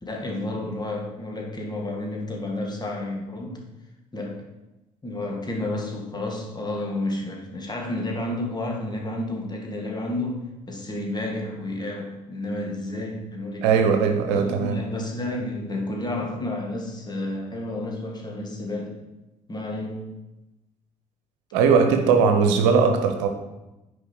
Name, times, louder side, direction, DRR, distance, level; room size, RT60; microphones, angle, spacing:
voice 1, 0.0-3.6 4.1-4.5 5.0-10.4 10.7-13.7 14.3-19.0 19.5-20.1, left 1 dB, 20° left, 0 dB, 2.1 m, -31 dB
voice 2, 13.6-14.8 21.5-23.3, right 5 dB, 65° right, 6 dB, 0.9 m, -19 dB
9.9 x 4.9 x 4.7 m, 1.0 s
figure-of-eight pair, 50°, 19 cm